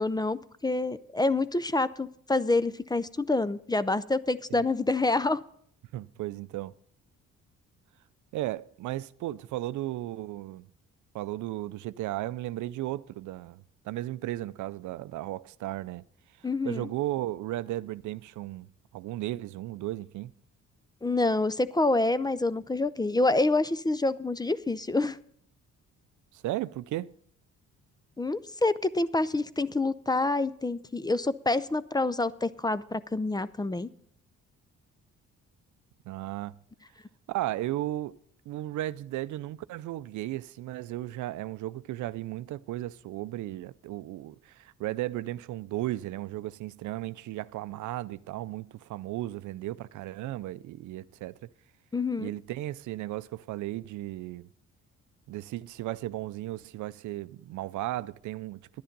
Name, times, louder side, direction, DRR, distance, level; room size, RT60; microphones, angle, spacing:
voice 1, 0.0-5.4 16.4-16.9 21.0-25.2 28.2-33.9 51.9-52.3, left 2 dB, 15° left, 0.5 m, -27 dB
voice 2, 5.9-6.7 8.3-10.7 11.1-16.0 16.4-20.3 26.3-27.1 36.0-36.5 37.3-38.2 38.5-51.5 52.2-54.5 55.3-58.8, right 15 dB, 80° right, 0.5 m, -35 dB
11.5 x 10.0 x 5.3 m
cardioid pair, 90°, 30 cm